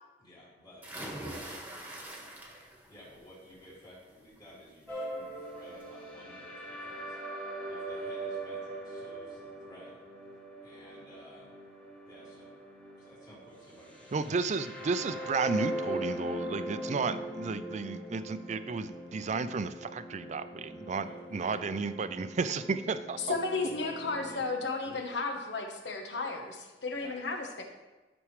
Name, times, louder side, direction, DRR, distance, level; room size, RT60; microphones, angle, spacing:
voice 1, 0.2-1.5 2.9-7.2 7.7-10.0 10.6-11.5 12.0-12.6 13.0-14.3 21.0-21.6 23.6-24.5 24.8-25.1 26.9-27.1, left 1 dB, 25° left, -9 dB, 2.7 m, -53 dB
sound 1, 0.8-2.9 3.3-3.7 5.1-5.2 5.6-5.7, right 1 dB, 10° right, 1.3 m, -42 dB
sound 2, 4.9-24.5, right 1 dB, 5° left, 1.4 m, -41 dB
voice 2, 14.1-23.2, right 4 dB, 40° right, 12 dB, 0.4 m, -33 dB
voice 3, 23.2-27.6, left 3 dB, 75° left, 3 dB, 1.2 m, -34 dB
12.5 x 6.1 x 3.2 m, 1.2 s
head